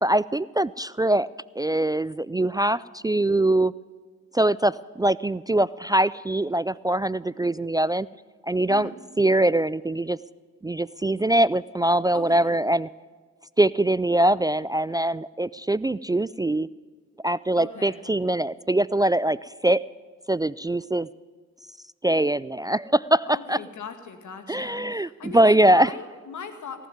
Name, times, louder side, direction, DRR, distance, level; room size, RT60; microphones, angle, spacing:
voice 1, 0.0-1.3 1.6-3.7 4.3-8.1 8.4-8.9 9.2-10.2 10.6-12.9 13.6-16.7 17.2-19.8 20.3-21.1 22.0-23.6 24.5-25.9, right 1 dB, 15° right, 19 dB, 0.3 m, -22 dB
voice 2, 12.1-12.5 17.6-18.1 23.3-26.9, left 5 dB, 65° left, 8 dB, 2.2 m, -40 dB
18.0 x 7.5 x 9.4 m, 1.6 s
supercardioid pair, 45°, 31 cm